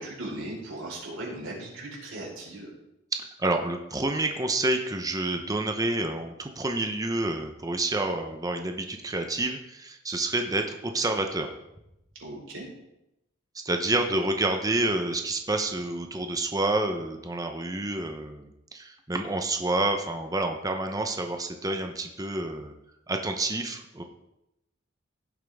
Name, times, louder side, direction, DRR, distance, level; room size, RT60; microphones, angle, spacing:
voice 1, 0.0-2.7 12.1-12.7 14.1-14.2, right 1 dB, 75° right, -3 dB, 4.6 m, -38 dB
voice 2, 3.4-11.5 13.6-22.7 23.1-24.0, right 2 dB, 20° right, 4 dB, 0.8 m, -28 dB
16.0 x 7.3 x 3.6 m, 0.87 s
head